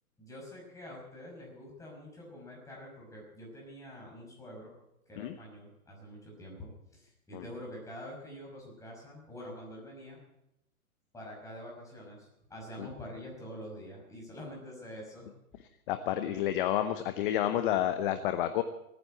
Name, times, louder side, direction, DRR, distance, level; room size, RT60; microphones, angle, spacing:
voice 1, 0.2-4.7 5.1-10.2 11.1-15.3, equal, 5° left, -2 dB, 5.5 m, -46 dB
voice 2, 15.9-18.6, left 12 dB, 35° left, 9 dB, 0.9 m, -30 dB
18.0 x 9.7 x 7.7 m, 0.84 s
hypercardioid pair, 145°, 43 cm